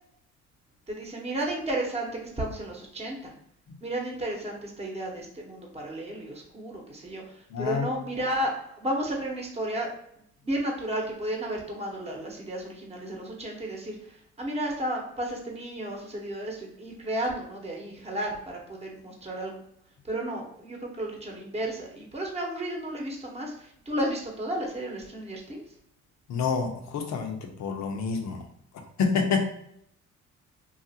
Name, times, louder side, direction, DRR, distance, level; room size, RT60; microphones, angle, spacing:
voice 1, 0.9-3.3 3.8-9.9 10.4-19.6 20.0-25.6, right 1 dB, 20° right, 0 dB, 0.9 m, -33 dB
voice 2, 7.5-7.9 26.3-28.4 29.0-29.5, left 5 dB, 65° left, 3 dB, 0.7 m, -28 dB
2.9 x 2.5 x 2.8 m, 0.71 s
cardioid pair, 90°, 30 cm